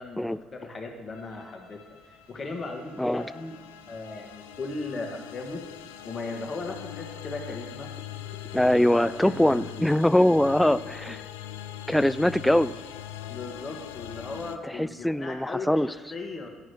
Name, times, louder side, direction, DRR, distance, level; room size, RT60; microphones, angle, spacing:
voice 1, 0.0-1.8 2.1-3.6 3.9-5.6 6.0-7.9 8.9-9.8 10.7-10.8 13.3-16.5, left 3 dB, 40° left, 3 dB, 1.6 m, -37 dB
sound 1, 1.1-9.5, left 3 dB, 75° left, 1.8 m, -59 dB
sound 2, 2.3-14.6, left 11 dB, 90° left, 0.4 m, -42 dB
voice 2, 8.5-11.2 11.9-12.7 14.7-15.9, left 1 dB, 5° left, 16 dB, 0.3 m, -22 dB
10.5 x 4.9 x 5.7 m, 1.4 s
hypercardioid pair, 65°, 0 cm